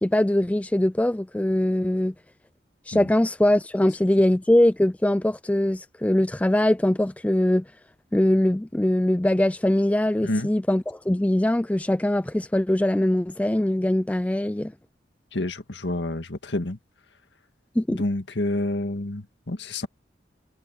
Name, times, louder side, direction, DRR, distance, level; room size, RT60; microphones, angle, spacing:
voice 1, 0.0-2.1 2.9-7.7 8.1-14.7 17.8-18.0, left 1 dB, 10° left, 0.3 m, -22 dB
voice 2, 15.3-16.8 17.9-19.9, left 1 dB, 70° left, 1.9 m, -28 dB
head